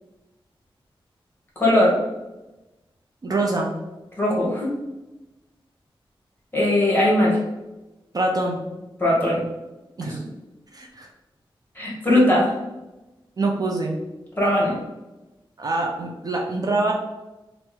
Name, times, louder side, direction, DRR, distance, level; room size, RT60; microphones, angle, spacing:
voice 1, 1.6-1.9 4.2-4.7 6.5-7.4 9.0-9.4 11.8-12.5 14.4-14.7, left 1 dB, 20° left, -4 dB, 1.2 m, -19 dB
voice 2, 3.2-3.7 8.1-8.6 10.0-10.3 10.7-11.1 12.3-12.4 13.4-14.0 15.6-16.9, right 2 dB, 40° right, 0 dB, 0.4 m, -25 dB
3.3 x 2.0 x 3.0 m, 1.0 s
wide cardioid pair, 80°, 9 cm